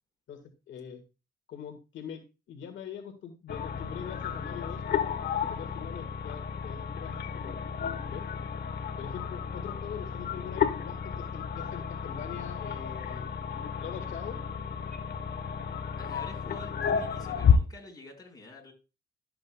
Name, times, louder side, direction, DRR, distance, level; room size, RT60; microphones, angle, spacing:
voice 1, 0.7-1.0 1.5-4.8 5.4-7.6 8.1-8.2 9.0-13.3 13.8-14.4, left 8 dB, 70° left, 4 dB, 1.7 m, -43 dB
sound 1, 3.5-17.6, left 7 dB, 55° left, 1.0 m, -32 dB
voice 2, 16.0-18.7, left 2 dB, 20° left, 1 dB, 4.9 m, -48 dB
13.0 x 7.8 x 2.2 m, 0.29 s
cardioid pair, 90°, 20 cm